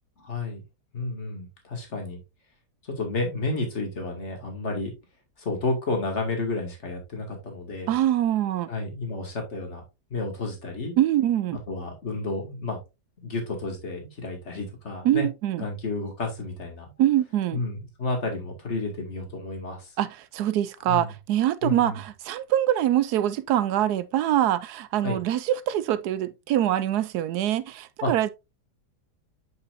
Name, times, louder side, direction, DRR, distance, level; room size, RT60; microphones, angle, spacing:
voice 1, 0.2-0.6 0.9-2.2 2.8-4.9 5.4-8.0 8.7-9.8 10.1-10.9 11.7-12.8 13.2-15.3 15.6-16.9 17.5-19.9 20.9-21.1 21.6-22.0 25.0-25.2 28.0-28.1, left 3 dB, 40° left, 2.4 m, -31 dB
voice 2, 7.9-8.7 11.0-11.6 15.0-15.6 17.0-17.6 20.0-28.3, right 12 dB, 75° right, 1.1 m, -24 dB
8.0 x 5.5 x 2.6 m
omnidirectional pair, 1.8 m